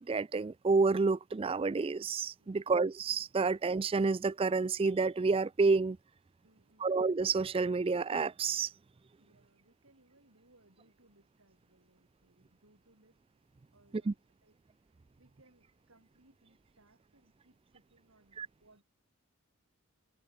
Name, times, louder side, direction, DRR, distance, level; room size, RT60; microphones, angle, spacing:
voice 1, 0.0-6.0 6.8-8.7 14.1-14.2 18.4-18.5, right 4 dB, 25° right, 0.3 m, -29 dB
voice 2, 2.4-2.7 6.4-6.9 9.2-13.2 13.7-18.8, right 2 dB, 65° right, 4.8 m, -67 dB
head